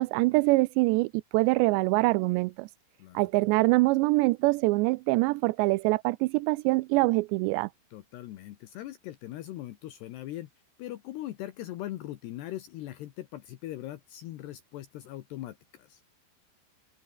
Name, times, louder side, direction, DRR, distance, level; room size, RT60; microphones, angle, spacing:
voice 1, 0.0-2.7 3.1-7.7, right 23 dB, 85° right, 2.6 m, -24 dB
voice 2, 3.0-3.3 7.9-10.5 10.8-16.0, left 14 dB, 70° left, 3.0 m, -40 dB
omnidirectional pair, 5.4 m